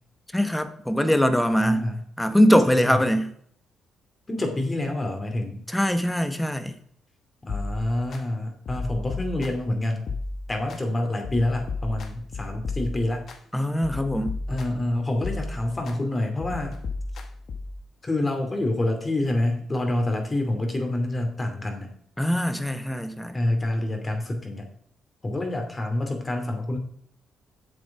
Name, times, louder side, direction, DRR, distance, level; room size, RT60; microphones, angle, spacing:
voice 1, 0.3-1.9 2.2-3.3 5.7-6.8 13.5-14.4 22.2-23.4, equal, 5° left, 10 dB, 1.0 m, -22 dB
voice 2, 1.6-2.0 2.7-3.0 4.3-5.6 7.5-10.1 10.5-13.2 14.5-16.8 18.0-21.9 23.3-24.7 25.2-26.8, left 1 dB, 25° left, 4 dB, 2.5 m, -27 dB
sound 1, 7.5-8.2 8.7-9.7 10.1-10.8 11.2-13.4 13.8-14.9 15.2-16.0 16.4-17.8, left 3 dB, 60° left, 1.3 m, -34 dB
8.0 x 7.1 x 4.8 m, 0.64 s
cardioid pair, 90°, 0 cm